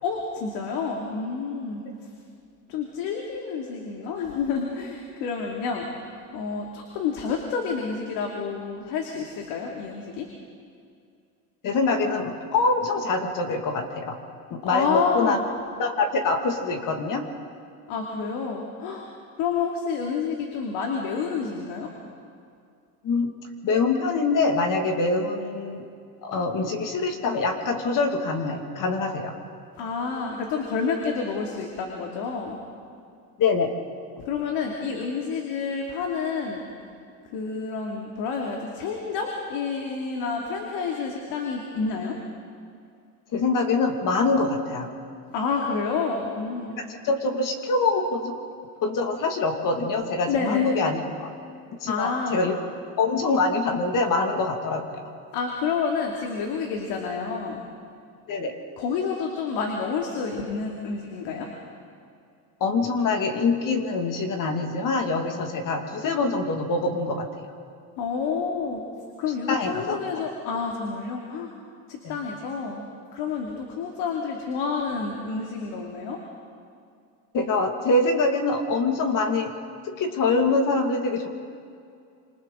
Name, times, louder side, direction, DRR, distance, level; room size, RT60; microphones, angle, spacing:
voice 1, 0.0-1.8 2.7-6.0 6.3-10.3 14.6-15.4 17.9-19.0 19.4-21.9 29.8-32.6 34.2-36.6 37.3-42.1 45.3-46.8 50.3-50.7 51.9-52.4 55.3-57.6 58.8-61.5 68.0-68.8 69.2-71.5 71.9-72.8 73.1-76.2, left 5 dB, 65° left, 0 dB, 2.8 m, -29 dB
voice 2, 11.6-14.2 14.5-15.4 15.8-17.3 23.0-23.3 23.6-25.8 26.2-29.3 33.4-33.7 43.3-44.9 46.8-48.4 48.8-51.3 51.7-52.6 53.0-55.0 58.3-58.5 62.6-67.5 69.5-70.2 72.0-72.2 77.3-79.6 79.8-81.3, left 3 dB, 45° left, 4 dB, 2.3 m, -24 dB
26.5 x 26.5 x 4.0 m, 2.4 s
supercardioid pair, 110°, 44 cm